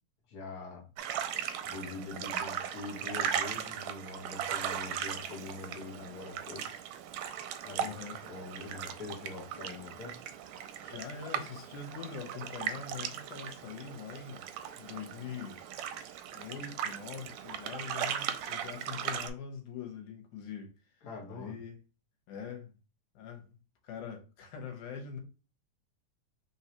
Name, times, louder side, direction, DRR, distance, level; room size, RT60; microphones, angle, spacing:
voice 1, 0.3-0.8 1.6-6.8 7.6-7.9 8.2-10.2 21.0-21.5, left 4 dB, 45° left, 1.5 m, -44 dB
sound 1, 1.0-19.3, right 9 dB, 80° right, 1.8 m, -38 dB
voice 2, 7.8-8.2 10.8-14.5 14.8-15.6 16.3-20.7 21.0-21.8 22.3-22.7 23.2-23.4 23.8-25.2, left 6 dB, 85° left, 2.5 m, -43 dB
4.6 x 3.8 x 2.9 m
omnidirectional pair, 3.4 m